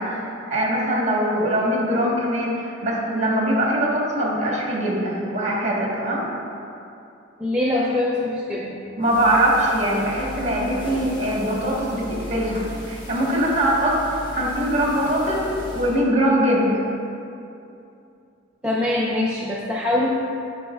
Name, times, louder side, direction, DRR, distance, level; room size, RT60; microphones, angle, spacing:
voice 1, 0.0-6.2 9.0-14.0 14.3-16.8, right 1 dB, 35° right, -4 dB, 1.4 m, -22 dB
voice 2, 7.4-8.8 18.6-20.1, left 1 dB, 5° right, -6 dB, 0.5 m, -23 dB
sound 1, 9.0-16.0, equal, 25° left, 1.2 m, -37 dB
11.0 x 5.2 x 2.4 m, 2.7 s
head